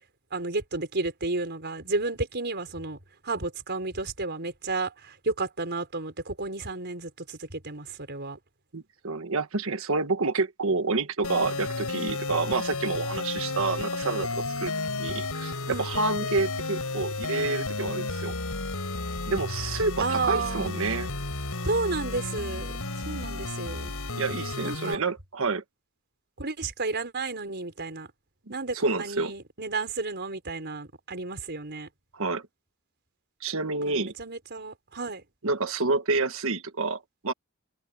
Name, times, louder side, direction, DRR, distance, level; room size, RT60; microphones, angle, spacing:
voice 1, 0.3-3.0 3.2-8.4 15.7-16.4 20.0-20.7 21.6-22.7 23.0-23.9 24.6-25.0 26.4-28.1 28.5-31.9 33.9-35.2, right 3 dB, 50° right, 4.9 m, -32 dB
voice 2, 8.7-18.3 19.3-21.1 24.1-25.6 28.7-29.3 32.1-32.4 33.4-34.1 35.4-37.3, right 3 dB, 65° right, 1.5 m, -28 dB
sound 1, 11.2-24.9, left 3 dB, 85° left, 5.2 m, -32 dB
head